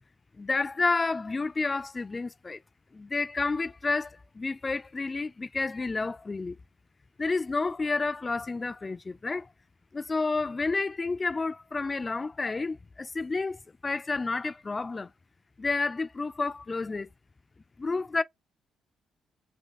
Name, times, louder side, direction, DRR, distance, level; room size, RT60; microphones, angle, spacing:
voice 1, 0.4-2.6 2.9-6.6 7.2-9.5 9.9-15.1 15.6-17.1 17.8-18.2, left 3 dB, 25° left, 0.3 m, -30 dB
2.7 x 2.4 x 3.4 m
cardioid pair, 90°, 0 cm